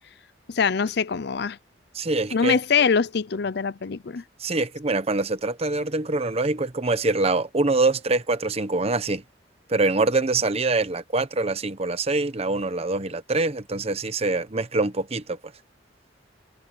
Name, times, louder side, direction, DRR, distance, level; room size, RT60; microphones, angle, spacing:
voice 1, 0.5-1.6 2.3-4.2, left 5 dB, 60° left, 0.6 m, -23 dB
voice 2, 1.9-2.6 4.4-9.2 9.7-15.4, right 3 dB, 35° right, 1.0 m, -24 dB
head